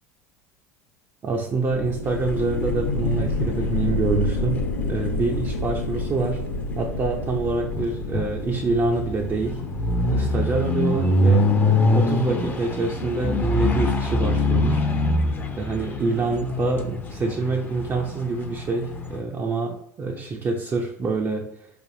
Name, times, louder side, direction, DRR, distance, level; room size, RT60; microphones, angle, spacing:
voice 1, 1.2-6.4 6.8-9.6 10.1-11.5 11.9-14.9 15.5-21.5, right 3 dB, 25° right, 0 dB, 0.5 m, -26 dB
sound 1, 1.7-13.1, left 2 dB, 70° left, 0.6 m, -29 dB
sound 2, 2.0-19.2, left 1 dB, 20° left, 0.6 m, -25 dB
4.3 x 3.4 x 2.6 m, 0.69 s
hypercardioid pair, 75°, 9 cm